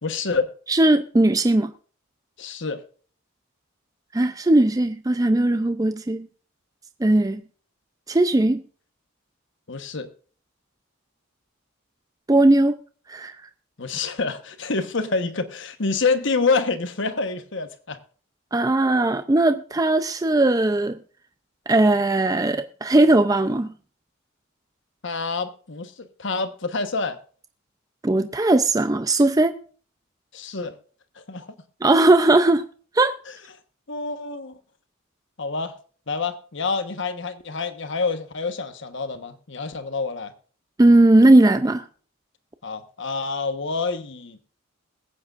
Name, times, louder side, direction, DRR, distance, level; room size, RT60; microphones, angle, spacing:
voice 1, 0.0-0.5 2.4-2.8 9.7-10.1 13.8-18.0 25.0-27.2 30.3-30.8 31.2-31.5 33.9-34.6 35.4-35.7 36.1-40.3 42.6-44.4, left 4 dB, 60° left, 1.2 m, -27 dB
voice 2, 0.7-1.7 4.1-6.2 7.0-7.4 8.1-8.6 12.3-12.7 13.1-13.3 18.5-21.0 21.7-23.7 28.0-29.6 31.8-32.6 33.0-33.2 40.8-41.8, right 2 dB, 15° right, 0.4 m, -18 dB
21.5 x 8.8 x 2.5 m
head